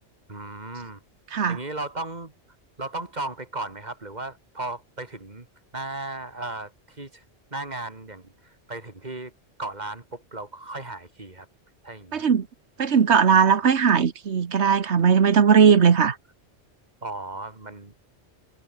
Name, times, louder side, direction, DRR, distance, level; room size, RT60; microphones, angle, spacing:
voice 1, 0.3-1.0 1.5-2.3 2.8-5.5 5.7-7.2 7.5-9.3 9.6-11.5 11.8-12.3 17.0-18.1, right 2 dB, 40° right, 3.0 m, -36 dB
voice 2, 12.1-12.5 12.8-16.2, right 6 dB, 75° right, 1.5 m, -18 dB
omnidirectional pair, 1.2 m